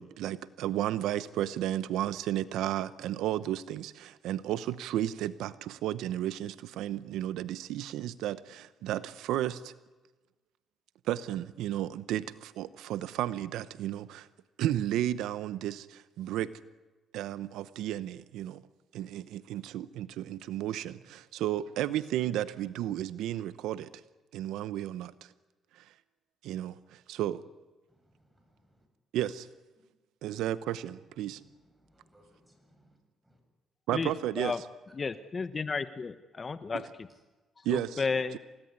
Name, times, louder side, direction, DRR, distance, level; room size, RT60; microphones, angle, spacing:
voice 1, 0.0-9.7 11.0-14.3 14.6-16.5 17.1-18.6 18.9-23.9 24.3-25.3 25.7-25.9 26.4-27.4 29.1-29.5 30.2-31.4 33.9-34.5 37.6-38.0, right 12 dB, 85° right, 0.8 m, -33 dB
voice 2, 27.9-28.9 31.2-33.0 33.2-33.4, right 1 dB, 10° right, 7.8 m, -65 dB
voice 3, 34.9-37.1 37.6-38.4, left 4 dB, 35° left, 1.1 m, -33 dB
28.5 x 18.0 x 9.7 m
cardioid pair, 80°, 0 cm